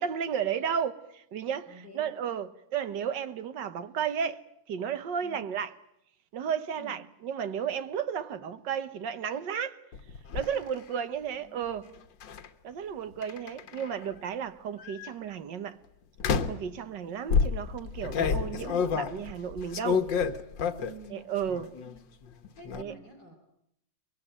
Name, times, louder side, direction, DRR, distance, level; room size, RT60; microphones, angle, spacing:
voice 1, 0.0-4.4 4.7-5.8 6.3-9.8 10.3-11.9 12.6-15.8 16.5-20.1 21.1-21.7 22.7-22.9, right 8 dB, 70° right, 1.8 m, -33 dB
voice 2, 1.7-2.4 5.2-5.4 6.8-7.0 11.4-11.9 13.6-14.1 20.8-21.3 21.8-22.0 22.5-23.4, right 1 dB, 55° left, 4.5 m, -51 dB
sound 1, 9.9-10.5 12.2-12.5 13.2-14.0 14.8-15.1 16.2-16.7 17.3-21.1 21.4-22.0 22.2-22.8, left 6 dB, 75° left, 1.9 m, -29 dB
24.0 x 23.0 x 9.0 m
omnidirectional pair, 2.0 m